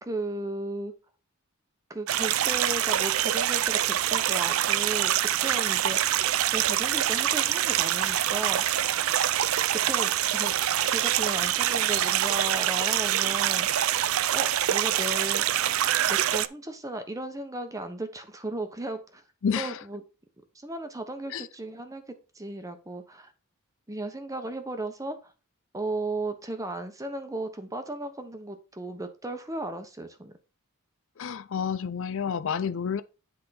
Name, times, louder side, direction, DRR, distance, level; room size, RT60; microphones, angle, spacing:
voice 1, 0.0-0.9 1.9-6.0 6.5-8.6 9.7-10.5 10.9-13.7 14.3-15.4 16.0-19.2 19.6-20.0 20.5-23.3 23.9-25.3 25.7-30.3, right 2 dB, 15° right, 1.0 m, -35 dB
sound 1, 2.1-16.5, right 11 dB, 70° right, 0.4 m, -25 dB
voice 2, 19.4-19.8 21.3-21.5 31.2-33.0, left 6 dB, 60° left, 0.4 m, -29 dB
9.9 x 3.7 x 4.2 m
head